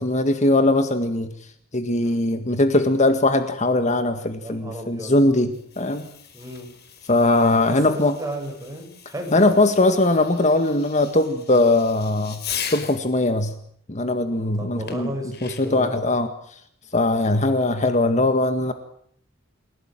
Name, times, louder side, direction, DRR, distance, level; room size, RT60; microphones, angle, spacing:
voice 1, 0.0-1.3 1.7-6.1 7.1-8.1 9.3-12.4 12.7-13.5 13.9-15.1 15.4-16.3 16.9-18.7, left 2 dB, 35° left, 9 dB, 1.9 m, -20 dB
voice 2, 4.4-5.2 6.3-6.7 7.7-9.8 14.3-16.0, right 1 dB, 15° right, 3 dB, 7.4 m, -34 dB
Fireworks, 5.4-13.1 14.9-15.9, left 8 dB, 55° left, 4.9 m, -39 dB
29.5 x 17.0 x 9.2 m, 0.66 s
head